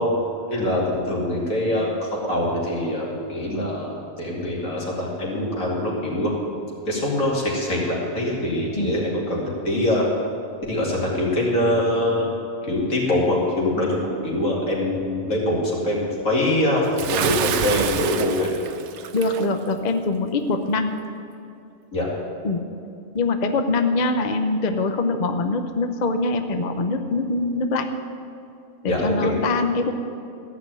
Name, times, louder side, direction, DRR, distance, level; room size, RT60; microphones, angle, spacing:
voice 1, 0.0-6.3 6.9-10.0 10.7-12.3 12.6-18.5 21.9-22.1 28.9-29.3, left 1 dB, 70° left, -4 dB, 3.0 m, -23 dB
Bathtub (filling or washing) / Splash splatter, 17.0-19.5, right 8 dB, 65° right, 0.9 m, -27 dB
voice 2, 19.1-20.9 22.4-22.6 23.1-27.9 28.8-29.9, left 3 dB, 40° left, 7 dB, 0.6 m, -23 dB
14.5 x 6.1 x 9.0 m, 2.6 s
omnidirectional pair, 1.5 m